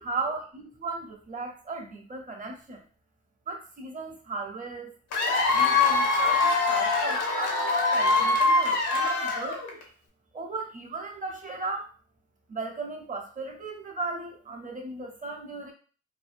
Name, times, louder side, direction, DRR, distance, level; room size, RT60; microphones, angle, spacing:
voice 1, 0.0-2.8 3.5-4.9 5.5-9.7 10.3-12.0 12.5-15.7, right 3 dB, 25° right, 2 dB, 0.7 m, -36 dB
Cheering / Applause / Crowd, 5.1-9.8, left 3 dB, 85° left, 0.8 m, -23 dB
2.7 x 2.2 x 2.5 m, 0.39 s
cardioid pair, 90°, 30 cm